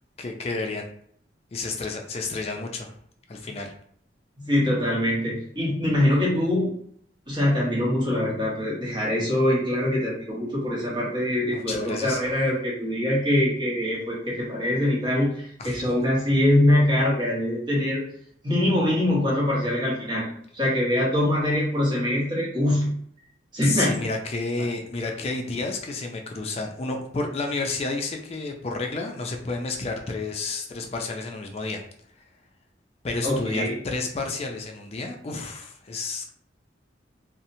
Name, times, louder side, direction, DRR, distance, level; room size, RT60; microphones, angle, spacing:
voice 1, 0.2-0.9 1.5-2.9 3.3-3.7 11.5-12.2 15.6-15.8 23.6-31.8 33.0-36.3, left 3 dB, 35° left, 3 dB, 0.4 m, -30 dB
voice 2, 4.4-6.7 7.3-18.0 18.4-20.3 20.5-22.9 23.5-24.0 33.2-33.7, left 1 dB, 25° right, -6 dB, 0.9 m, -23 dB
2.8 x 2.0 x 2.6 m, 0.63 s
head